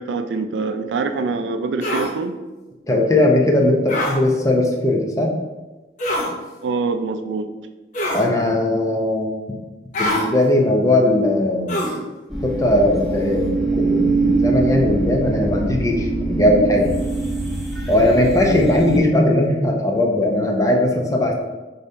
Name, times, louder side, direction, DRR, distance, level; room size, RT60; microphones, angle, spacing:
voice 1, 0.0-2.4 6.6-7.5 19.1-19.2, right 4 dB, 80° right, 8 dB, 0.3 m, -24 dB
sound 1, 1.8-2.1 3.9-4.2 6.0-6.3 7.9-8.3 9.9-10.3 11.7-12.0, left 1 dB, 45° left, 0.9 m, -23 dB
voice 2, 2.9-5.3 8.1-9.3 10.0-11.8 12.4-16.9 17.9-21.3, left 1 dB, 20° left, 0 dB, 0.6 m, -18 dB
sound 2, 12.3-19.0, right 3 dB, ahead, 0.9 m, -23 dB
5.1 x 2.7 x 3.3 m, 1.2 s
head